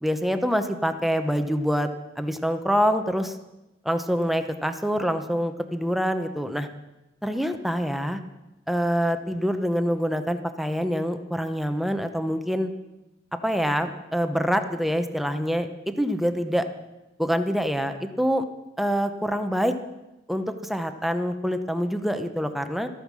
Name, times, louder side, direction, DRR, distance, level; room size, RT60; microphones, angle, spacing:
voice 1, 0.0-1.9 2.2-3.4 3.8-6.7 7.2-8.2 8.7-12.7 13.4-16.7 17.2-18.4 18.8-19.7 20.3-22.9, equal, ahead, 8 dB, 0.7 m, -25 dB
13.5 x 9.2 x 6.1 m, 0.98 s
head